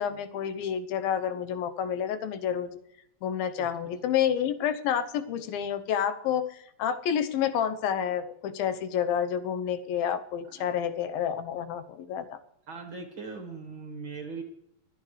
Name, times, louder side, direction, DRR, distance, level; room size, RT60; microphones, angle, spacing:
voice 1, 0.0-2.7 3.2-12.4, left 9 dB, 90° left, 10 dB, 2.8 m, -29 dB
voice 2, 3.6-3.9 12.7-14.4, right 4 dB, 45° right, 4 dB, 1.8 m, -40 dB
25.0 x 9.7 x 3.2 m, 0.79 s
omnidirectional pair, 4.1 m